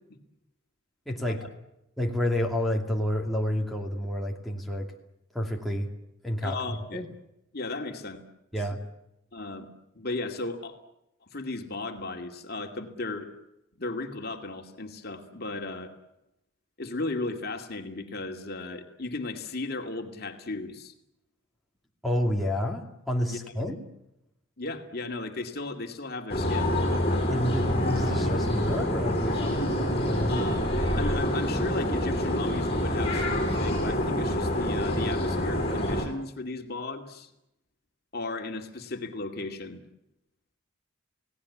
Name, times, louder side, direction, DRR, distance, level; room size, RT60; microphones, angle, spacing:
voice 1, 1.1-1.5 2.0-4.9 5.3-5.9 6.2-7.0 8.5-8.8 22.0-23.8 27.3-30.5, left 1 dB, ahead, -1 dB, 2.6 m, -29 dB
voice 2, 6.4-7.0 7.5-8.2 9.3-9.7 9.9-10.7 11.3-13.3 13.8-15.9 16.8-20.9 23.3-23.4 23.6-23.8 24.6-26.8 30.3-30.7 31.0-37.3 38.1-39.8, left 2 dB, 50° left, 4 dB, 2.5 m, -35 dB
sound 1, 26.3-36.1, left 1 dB, 30° left, 6.3 m, -27 dB
30.0 x 18.0 x 8.6 m, 0.87 s
head